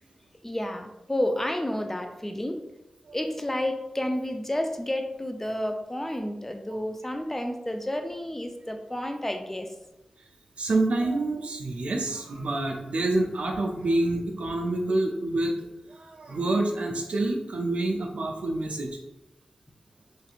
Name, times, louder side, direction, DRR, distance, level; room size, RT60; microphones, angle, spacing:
voice 1, 0.4-2.6 3.1-9.7, left 1 dB, 15° left, 5 dB, 0.4 m, -30 dB
voice 2, 10.6-19.0, right 2 dB, 75° right, 2 dB, 0.4 m, -27 dB
3.1 x 2.8 x 2.4 m, 0.96 s
cardioid pair, 40°, 2 cm